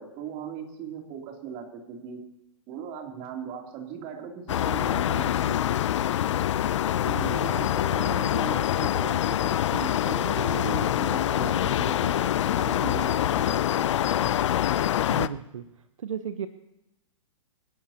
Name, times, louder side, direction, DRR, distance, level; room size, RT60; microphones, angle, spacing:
voice 1, 0.0-2.2 2.7-5.6 7.0-14.1, right 7 dB, 35° right, 1 dB, 3.0 m, -38 dB
sound 1, 4.5-15.3, left 11 dB, 65° left, 0.5 m, -25 dB
voice 2, 7.1-7.6 15.1-16.5, right 8 dB, 80° right, 10 dB, 0.9 m, -36 dB
26.0 x 11.5 x 2.9 m, 0.87 s
hypercardioid pair, 135°, 16 cm